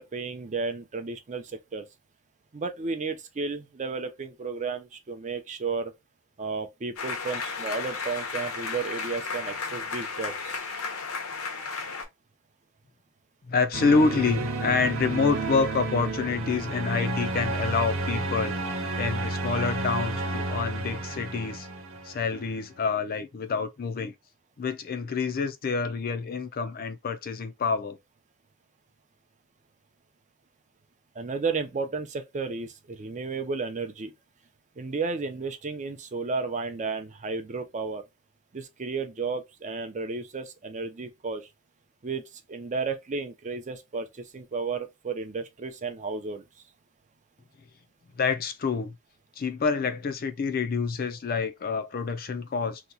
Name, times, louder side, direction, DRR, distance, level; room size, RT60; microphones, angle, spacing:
voice 1, 0.0-1.8 2.5-5.9 6.4-10.7 31.2-34.1 34.8-38.0 38.5-41.5 42.0-46.4, right 4 dB, 35° right, 0.5 m, -33 dB
sound 1, 7.0-12.0, left 4 dB, 85° left, 1.0 m, -34 dB
voice 2, 13.5-18.5 18.9-21.7 22.0-24.1 24.6-28.0 48.2-48.9 49.4-52.8, left 4 dB, 45° left, 0.4 m, -27 dB
sound 2, 13.7-22.6, right 2 dB, 70° right, 1.0 m, -31 dB
2.9 x 2.2 x 3.8 m
head